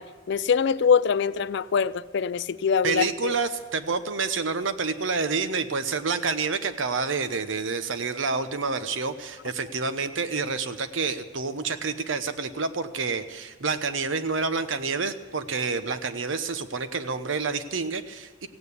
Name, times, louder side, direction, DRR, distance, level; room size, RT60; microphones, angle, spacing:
voice 1, 0.0-3.4, left 6 dB, 60° left, 0.4 m, -24 dB
voice 2, 2.8-18.5, right 4 dB, 75° right, 0.9 m, -28 dB
16.0 x 9.0 x 8.3 m
head